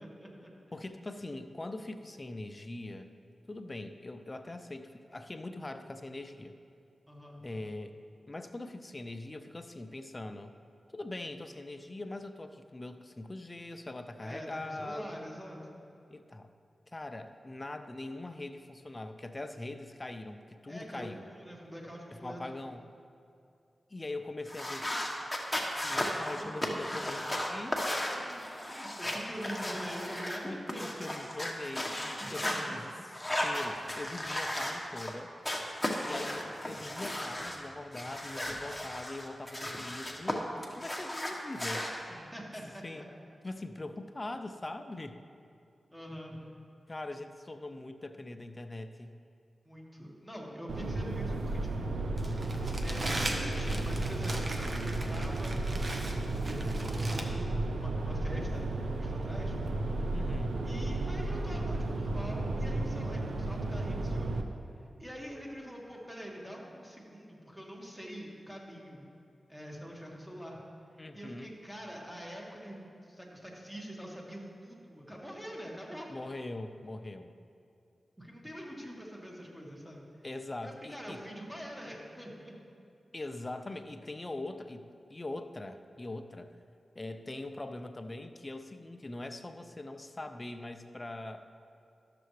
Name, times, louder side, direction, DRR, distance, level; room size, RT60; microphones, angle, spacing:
voice 1, 0.0-0.5 7.1-7.4 14.2-15.8 20.7-22.6 26.4-27.0 28.1-31.1 31.8-32.8 42.1-43.1 45.9-46.4 49.7-51.9 52.2-54.6 54.8-57.4 57.7-59.6 60.6-64.3 64.8-69.1 69.5-70.6 71.1-76.1 78.2-80.1 80.6-82.5, equal, 5° right, -3 dB, 1.7 m, -45 dB
voice 2, 0.7-3.1 3.5-6.5 7.4-7.9 8.3-10.5 10.9-15.3 16.1-16.5 16.9-21.3 22.1-22.8 23.9-24.9 25.8-27.8 30.4-32.9 33.4-35.3 36.0-40.4 40.7-41.9 42.8-43.0 43.4-45.2 46.9-49.2 60.1-60.6 71.0-71.5 76.1-77.3 80.2-81.2 83.1-86.5 86.9-91.4, left 2 dB, 30° left, 8 dB, 0.5 m, -42 dB
sound 1, 24.5-32.6 33.1-35.1 35.4-37.6 37.9-40.3 40.6-41.9, left 1 dB, 10° left, 1.2 m, -35 dB
sound 2, 50.7-64.4, right 2 dB, 75° right, 0.5 m, -33 dB
Crumpling crinkling, 52.2-57.2, right 1 dB, 45° right, 0.9 m, -39 dB
12.5 x 6.8 x 3.2 m, 2.5 s
cardioid pair, 60°, 0 cm